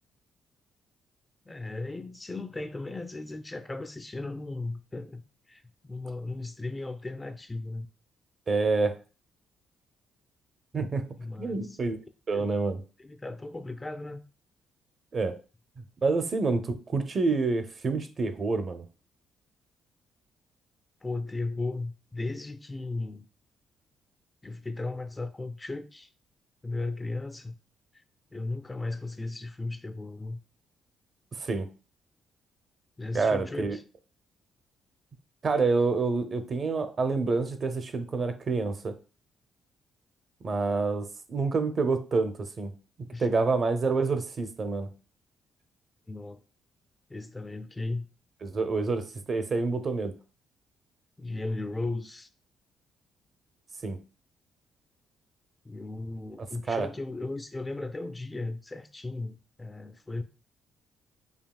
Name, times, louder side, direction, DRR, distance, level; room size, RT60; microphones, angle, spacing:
voice 1, 1.5-5.2 5.5-7.9 11.2-11.8 12.3-12.5 13.0-14.2 21.0-23.3 24.4-26.1 26.6-27.5 28.3-30.4 33.0-33.8 43.1-43.3 46.1-46.4 47.1-48.1 51.2-52.3 55.6-60.2, left 2 dB, 20° left, 0.3 m, -36 dB
voice 2, 8.5-8.9 10.7-11.0 11.4-12.0 12.3-12.8 15.1-15.3 16.0-18.8 31.4-31.7 33.1-33.8 35.4-38.9 40.4-42.7 43.2-44.9 48.4-50.1 53.8-54.0 56.7-56.9, right 4 dB, 45° right, 0.6 m, -27 dB
5.1 x 2.7 x 2.3 m
cardioid pair, 90°, 0 cm